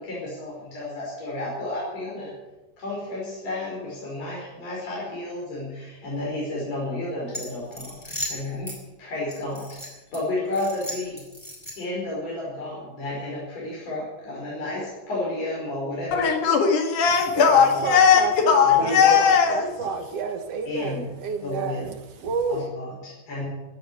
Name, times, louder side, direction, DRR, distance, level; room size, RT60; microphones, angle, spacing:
voice 1, 0.0-2.3 2.8-8.7 9.0-11.3 11.8-16.3 17.3-17.8 18.6-19.2 20.6-21.1 21.4-21.8 22.5-23.5, left 2 dB, 55° left, 6.5 m, -32 dB
sound 1, 7.3-8.8 9.3-10.2 10.5-12.0, equal, 10° left, 4.7 m, -36 dB
voice 2, 16.1-19.7, left 7 dB, 80° left, 3.4 m, -18 dB
voice 3, 17.3-22.7, right 5 dB, 60° right, 2.2 m, -30 dB
16.5 x 9.5 x 8.4 m
omnidirectional pair, 3.5 m